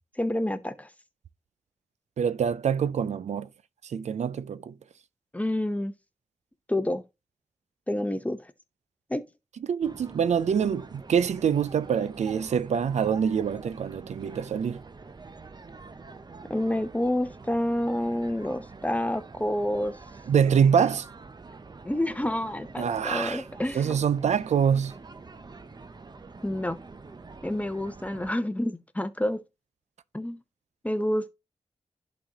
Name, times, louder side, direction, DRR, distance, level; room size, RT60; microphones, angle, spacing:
voice 1, 0.2-0.9 5.3-5.9 6.7-7.0 7.9-8.5 9.1-9.3 16.5-20.0 21.8-24.0 26.4-26.8 27.4-29.4 30.1-30.4 30.8-31.3, left 1 dB, 10° left, 0.8 m, -28 dB
voice 2, 2.2-3.5 3.9-4.7 9.7-14.8 20.3-21.1 22.8-23.4 23.7-24.9, right 7 dB, 80° right, 0.4 m, -25 dB
sound 1, 9.8-28.3, right 3 dB, 35° right, 0.6 m, -46 dB
11.0 x 4.2 x 2.9 m
cardioid pair, 55°, 12 cm